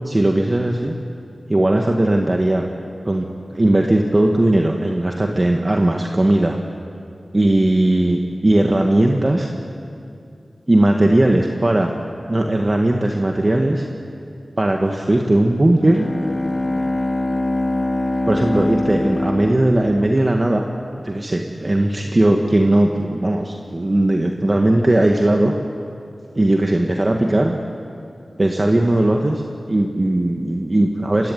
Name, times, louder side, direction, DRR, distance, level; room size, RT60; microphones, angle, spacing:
voice 1, 0.1-1.0 1.5-2.7 3.1-6.6 7.3-9.5 10.7-11.9 12.3-13.8 14.6-16.1 18.3-20.6 21.0-25.5 26.4-27.5 28.4-29.4 29.7-31.3, right 1 dB, 35° right, 2 dB, 1.8 m, -18 dB
Bowed string instrument, 15.8-20.4, left 1 dB, 40° left, 2.4 m, -23 dB
27.0 x 23.0 x 9.4 m, 2.5 s
wide cardioid pair, 65°, 0 cm